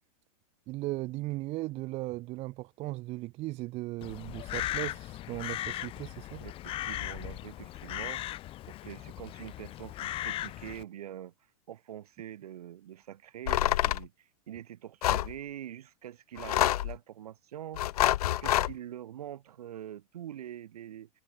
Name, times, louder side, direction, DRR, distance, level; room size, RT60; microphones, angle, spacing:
voice 1, 0.7-6.4, right 19 dB, 35° right, 1.5 m, -37 dB
Crow, 4.0-10.8, left 15 dB, 30° left, 1.3 m, -38 dB
voice 2, 6.4-8.2 8.7-11.3 11.7-17.8 18.2-21.1, right 11 dB, 90° right, 5.2 m, -44 dB
sound 1, 13.5-14.0 15.0-15.3 16.4-17.0 17.8-18.7, left 14 dB, 85° left, 0.6 m, -26 dB
supercardioid pair, 150°, 19 cm